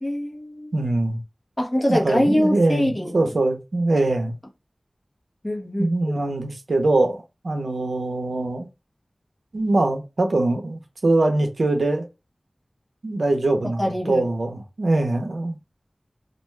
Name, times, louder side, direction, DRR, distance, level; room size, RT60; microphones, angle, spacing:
voice 1, 0.0-0.7 1.6-3.3 5.4-5.9 13.8-14.3, equal, 25° left, 0.9 m, -23 dB
voice 2, 0.7-1.2 1.9-4.3 5.8-7.2 7.4-8.7 9.5-12.0 13.0-15.6, right 2 dB, 90° right, 0.6 m, -22 dB
2.5 x 2.2 x 3.1 m
wide cardioid pair, 55°, 0 cm